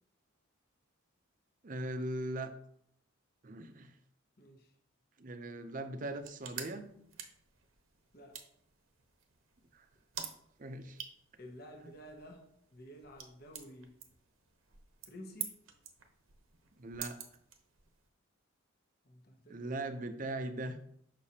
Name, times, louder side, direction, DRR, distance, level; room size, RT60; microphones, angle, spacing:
voice 1, 1.6-2.5 3.4-3.9 5.2-6.9 9.7-9.9 10.6-11.0 11.8-11.9 16.8-17.2 19.5-20.8, right 1 dB, 40° right, 8 dB, 0.6 m, -40 dB
voice 2, 4.4-4.7 8.1-8.5 11.4-14.0 15.0-15.6 19.0-19.7, equal, 50° left, 2 dB, 1.0 m, -52 dB
sound 1, 6.0-18.1, right 8 dB, 80° right, 0.9 m, -49 dB
6.5 x 5.9 x 2.8 m, 0.70 s
head